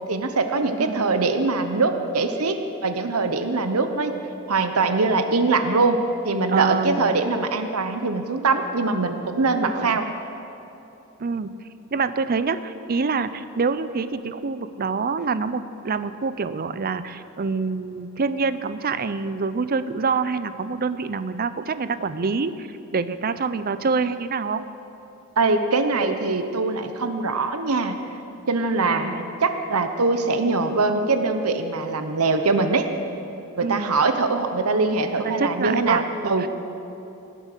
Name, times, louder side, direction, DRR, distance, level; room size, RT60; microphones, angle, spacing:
voice 1, 0.1-4.1 4.5-10.1 25.4-28.0 28.5-32.9 33.6-36.5, right 3 dB, 85° right, 8 dB, 1.0 m, -22 dB
voice 2, 6.5-7.1 9.6-10.0 11.2-11.5 11.9-24.7 28.9-29.2 33.6-33.9 35.2-36.5, right 4 dB, 45° right, 13 dB, 0.6 m, -26 dB
17.5 x 10.0 x 6.7 m, 2.9 s
head